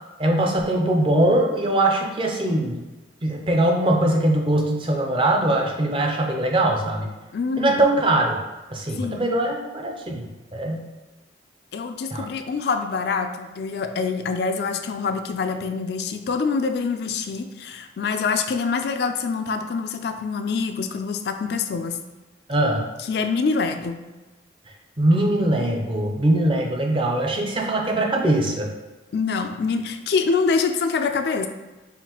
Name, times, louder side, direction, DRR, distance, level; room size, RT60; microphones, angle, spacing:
voice 1, 0.2-2.8 3.2-7.1 7.6-8.4 8.7-10.2 10.5-10.8 12.1-12.3 22.5-22.9 25.0-28.7, right 1 dB, 30° right, 1 dB, 0.5 m, -21 dB
voice 2, 7.3-7.8 9.0-9.3 11.7-22.0 23.1-24.0 29.1-31.5, left 4 dB, 60° left, 7 dB, 0.3 m, -25 dB
5.6 x 2.5 x 2.9 m, 1.2 s
head